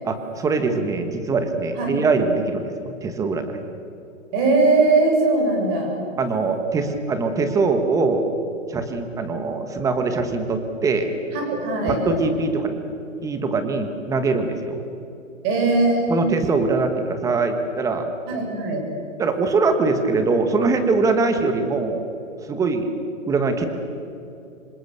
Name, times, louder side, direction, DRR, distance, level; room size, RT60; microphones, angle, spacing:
voice 1, 0.0-3.5 6.2-8.3 8.7-11.1 11.9-12.8 13.2-14.8 16.1-18.1 19.2-22.0 22.5-22.9 23.3-23.7, right 3 dB, 10° right, 7 dB, 1.5 m, -22 dB
voice 2, 4.3-6.0 11.3-12.0 15.4-16.1 18.3-18.8, right 3 dB, 25° right, 2 dB, 6.7 m, -20 dB
27.0 x 25.0 x 6.9 m, 2.8 s
hypercardioid pair, 155°, 40 cm